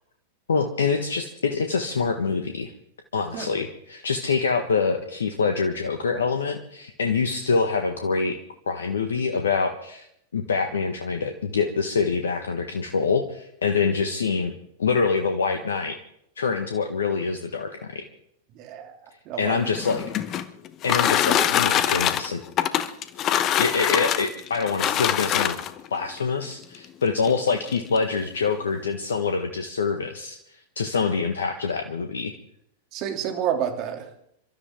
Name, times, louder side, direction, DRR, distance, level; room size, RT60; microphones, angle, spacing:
voice 1, 0.5-2.7 3.1-8.4 8.7-10.1 10.3-14.5 14.8-15.9 16.4-18.1 19.4-20.0 20.8-22.4 23.6-25.6 25.9-30.4 30.8-32.3, left 5 dB, 80° left, 5 dB, 1.5 m, -25 dB
voice 2, 18.5-19.0 19.2-19.6 32.9-34.1, right 9 dB, 45° right, 5 dB, 3.1 m, -29 dB
sound 1, 19.7-25.9 26.7-26.8 27.2-27.3 27.7-28.0, left 11 dB, 35° left, 1.1 m, -24 dB
29.0 x 13.0 x 3.8 m, 0.72 s
hypercardioid pair, 100°, 0 cm